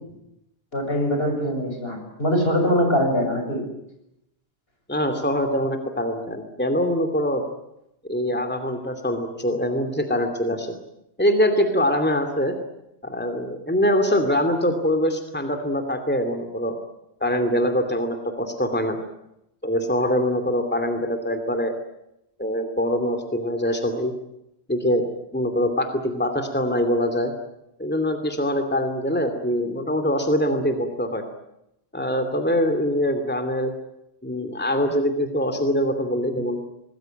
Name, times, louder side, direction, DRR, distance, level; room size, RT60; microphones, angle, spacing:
voice 1, 0.7-3.6, equal, 65° left, 4 dB, 7.0 m, -22 dB
voice 2, 4.9-7.4 8.1-10.8 11.2-12.6 13.0-16.7 17.2-19.0 19.6-21.7 22.4-24.1 24.7-25.0 25.3-27.3 27.8-31.3 31.9-33.7 34.2-36.6, equal, 10° left, 7 dB, 2.7 m, -23 dB
26.0 x 20.0 x 9.1 m, 0.84 s
omnidirectional pair, 1.1 m